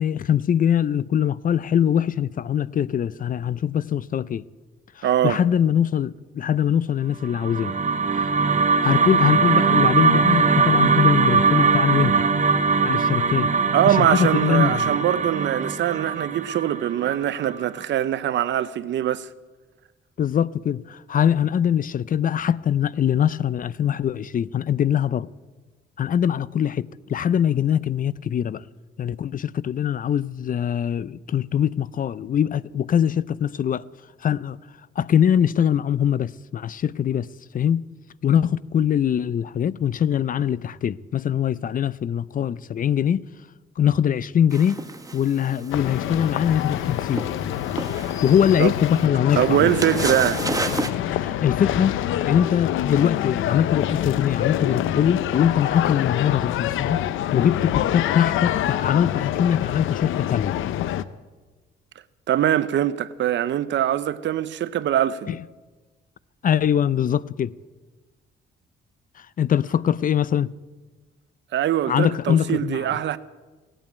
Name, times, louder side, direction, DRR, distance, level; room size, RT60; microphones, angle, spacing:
voice 1, 0.0-4.4 5.0-7.8 8.8-12.2 12.8-13.5 13.9-14.8 20.2-25.3 26.0-28.6 29.0-33.8 34.2-34.6 35.0-37.3 37.5-37.9 38.2-43.3 43.8-44.8 45.1-47.3 48.2-49.7 51.1-60.6 65.3-65.4 66.4-67.5 69.2-70.5 71.9-73.0, left 9 dB, 45° left, 0.5 m, -22 dB
voice 2, 5.0-5.4 13.7-19.3 48.6-48.7 49.4-50.5 62.3-65.4 71.5-73.2, right 11 dB, 65° right, 0.7 m, -22 dB
sound 1, 7.2-17.5, right 5 dB, 35° right, 0.9 m, -21 dB
sound 2, 44.5-50.9, right 3 dB, 15° right, 1.2 m, -33 dB
sound 3, 45.7-61.0, left 12 dB, 85° left, 0.7 m, -26 dB
17.5 x 8.9 x 9.1 m
cardioid pair, 90°, 20 cm